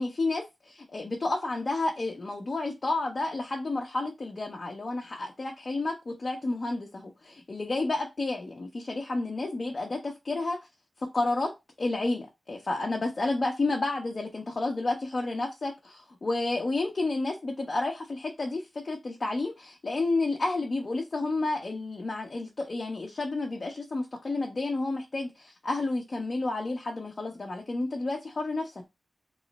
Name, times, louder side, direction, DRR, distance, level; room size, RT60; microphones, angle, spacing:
voice 1, 0.0-10.6 11.0-28.7, left 2 dB, 50° left, 0.6 m, -31 dB
3.0 x 2.0 x 3.9 m
wide cardioid pair, 65°, 0 cm